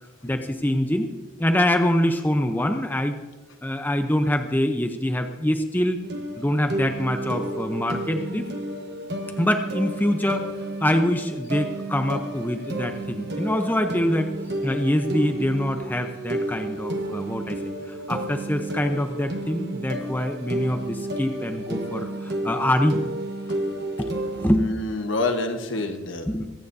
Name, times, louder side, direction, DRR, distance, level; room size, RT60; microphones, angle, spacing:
voice 1, 0.2-1.1 1.4-3.2 3.6-6.0 6.4-8.5 9.4-10.5 10.8-14.3 14.6-17.6 17.9-23.0 24.0-24.8 26.3-26.5, left 1 dB, 10° left, 6 dB, 0.7 m, -24 dB
sound 1, 6.0-24.6, right 1 dB, 55° right, 1.3 m, -31 dB
voice 2, 24.5-26.4, left 2 dB, 75° left, 6 dB, 1.2 m, -28 dB
22.5 x 9.4 x 2.7 m, 1.1 s
head